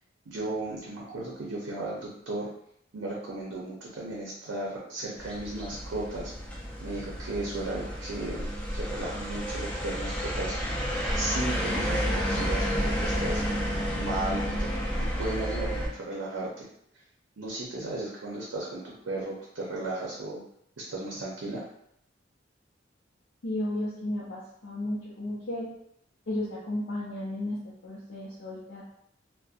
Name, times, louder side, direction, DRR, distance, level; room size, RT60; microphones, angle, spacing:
voice 1, 0.3-2.5 2.9-6.3 6.8-10.6 11.1-13.4 13.9-14.7 15.0-16.7 17.4-20.4 20.8-21.6, right 2 dB, 90° right, -4 dB, 0.6 m, -35 dB
sound 1, 5.2-15.9, equal, 5° left, 0.4 m, -31 dB
voice 2, 23.4-25.7 26.3-27.6 27.8-28.8, left 1 dB, 75° left, -7 dB, 0.5 m, -33 dB
2.6 x 2.1 x 2.4 m, 0.73 s
head